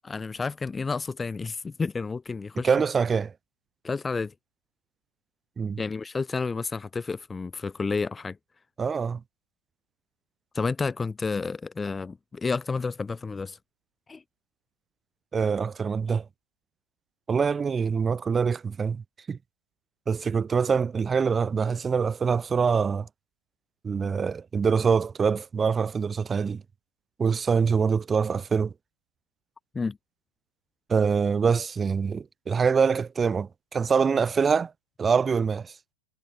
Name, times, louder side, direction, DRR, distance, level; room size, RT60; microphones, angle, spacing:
voice 1, 0.0-2.7 3.8-4.3 5.8-8.4 10.5-13.6 14.1-14.2 29.7-30.0, left 4 dB, 15° left, 1.7 m, -30 dB
voice 2, 2.6-3.3 5.6-5.8 8.8-9.2 15.3-16.3 17.3-19.4 20.1-23.1 23.8-26.6 27.2-28.7 30.9-34.7 35.0-35.7, right 5 dB, 15° right, 4.3 m, -24 dB
figure-of-eight pair, 90°, 0 cm